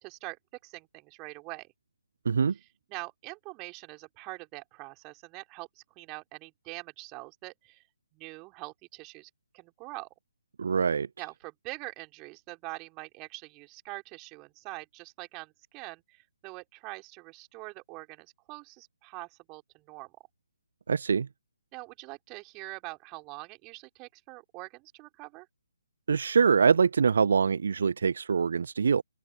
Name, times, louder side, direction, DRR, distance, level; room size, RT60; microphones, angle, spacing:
voice 1, 0.0-1.7 2.9-7.8 8.1-10.1 11.2-20.1 21.7-25.5, right 26 dB, 20° right, 3.8 m, -44 dB
voice 2, 10.6-11.1 20.9-21.3 26.1-29.0, right 6 dB, 55° right, 0.4 m, -24 dB
open air
figure-of-eight pair, 140°, 0 cm